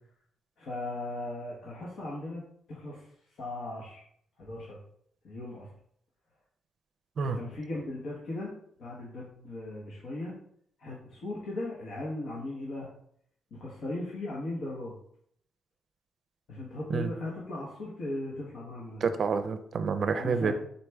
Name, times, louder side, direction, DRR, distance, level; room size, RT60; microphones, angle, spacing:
voice 1, 0.6-2.4 2.7-3.1 3.4-4.0 4.4-4.8 5.2-5.7 7.2-8.5 8.8-10.3 10.8-12.9 13.5-15.0 16.5-19.1 20.1-20.5, left 2 dB, 70° left, -5 dB, 1.1 m, -37 dB
voice 2, 19.0-20.5, right 5 dB, 50° right, 9 dB, 0.5 m, -28 dB
4.1 x 3.2 x 3.4 m, 0.66 s
cardioid pair, 100°, 0 cm